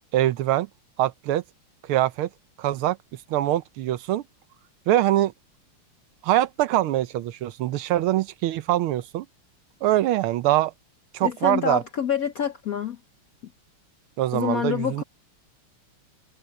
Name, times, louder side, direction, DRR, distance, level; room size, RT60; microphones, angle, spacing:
voice 1, 0.1-0.7 1.0-1.4 1.8-2.3 2.6-3.0 3.3-4.2 4.9-5.3 6.2-9.3 9.8-10.7 11.1-11.8 14.2-15.0, right 14 dB, 75° right, 1.6 m, -23 dB
voice 2, 11.2-13.0 14.3-15.0, left 8 dB, 60° left, 0.9 m, -27 dB
omnidirectional pair, 2.4 m